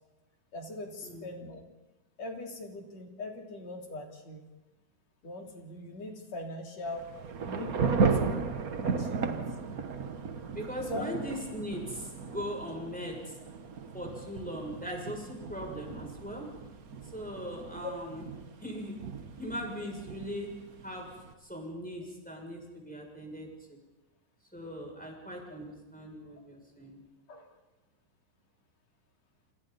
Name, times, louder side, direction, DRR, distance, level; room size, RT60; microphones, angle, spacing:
voice 1, 0.5-1.6 2.2-4.4 5.2-7.1 7.5-8.4 8.8-9.4 10.9-11.1 17.8-17.9 27.3-27.5, left 2 dB, 60° left, 1 dB, 4.4 m, -41 dB
Thunder / Rain, 6.9-21.3, right 5 dB, 60° right, 0.9 m, -35 dB
voice 2, 10.5-13.4 13.9-16.4 17.1-18.3 18.6-19.0 19.4-20.5 20.8-21.1 21.4-23.8 24.5-27.0, equal, ahead, -1 dB, 6.8 m, -39 dB
29.0 x 27.5 x 4.2 m, 1.1 s
omnidirectional pair, 3.5 m